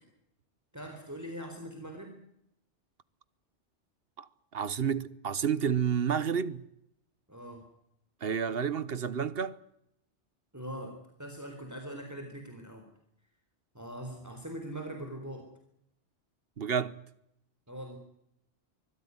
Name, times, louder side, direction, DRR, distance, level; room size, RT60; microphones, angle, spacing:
voice 1, 0.7-2.2 7.3-7.6 10.5-12.9 13.7-15.5 17.7-18.0, right 1 dB, 15° right, 3.9 m, -42 dB
voice 2, 4.5-6.6 8.2-9.6 16.6-17.0, right 7 dB, 60° right, 1.2 m, -30 dB
24.0 x 16.5 x 9.6 m
omnidirectional pair, 1.2 m